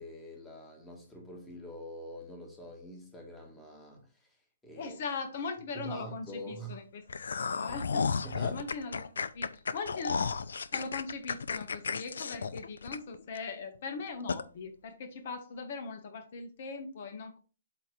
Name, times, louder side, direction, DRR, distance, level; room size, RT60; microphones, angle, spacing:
voice 1, 0.0-4.3 4.6-5.0 5.7-6.8 8.2-8.7, right 1 dB, 5° left, 1.5 m, -45 dB
voice 2, 4.7-8.1 8.5-10.3 10.7-17.4, left 4 dB, 50° left, 1.1 m, -40 dB
sound 1, 7.1-13.4 13.7-13.8 14.3-14.4, left 5 dB, 80° left, 0.5 m, -33 dB
8.0 x 2.9 x 5.1 m
hypercardioid pair, 150°, 0 cm